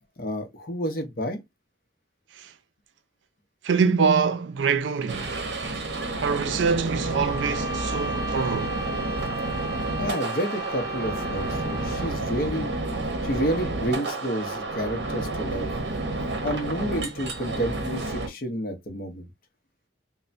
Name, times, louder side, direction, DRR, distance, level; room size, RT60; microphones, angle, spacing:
voice 1, 0.2-1.4 10.0-12.7 13.2-15.7 16.4-19.3, equal, 50° left, 0.6 m, -30 dB
voice 2, 3.6-5.3 6.2-8.8, right 5 dB, 85° right, 0.4 m, -24 dB
sound 1, 5.1-18.3, right 2 dB, 65° right, 0.8 m, -30 dB
sound 2, 7.0-12.3, right 2 dB, 35° right, 1.5 m, -36 dB
3.1 x 2.0 x 2.5 m
head